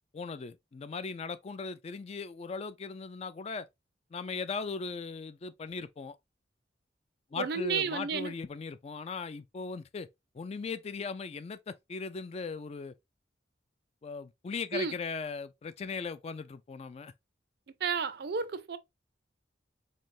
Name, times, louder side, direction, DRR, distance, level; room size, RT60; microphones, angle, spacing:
voice 1, 0.1-3.7 4.1-6.2 7.3-10.1 10.3-12.9 14.0-17.1, left 4 dB, 35° left, 0.3 m, -38 dB
voice 2, 7.4-8.3 14.7-14.9 17.8-18.8, right 5 dB, 60° right, 0.5 m, -32 dB
3.9 x 3.3 x 2.6 m
head